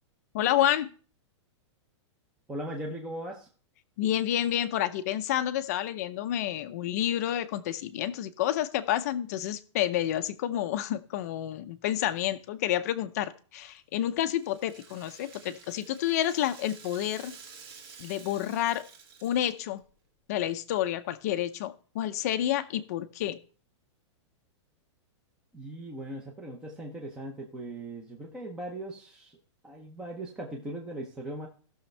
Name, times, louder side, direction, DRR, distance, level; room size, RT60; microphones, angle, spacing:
voice 1, 0.3-0.9 4.0-17.3 18.0-18.8 19.2-19.8 20.3-23.4, left 12 dB, 35° left, 10 dB, 0.6 m, -29 dB
voice 2, 2.5-3.5 25.5-29.4 29.6-31.5, right 1 dB, 5° right, -1 dB, 0.7 m, -39 dB
Rattle (instrument), 13.6-19.8, right 5 dB, 50° right, 2.4 m, -51 dB
16.0 x 6.4 x 3.2 m, 0.39 s
supercardioid pair, 180°, 16 cm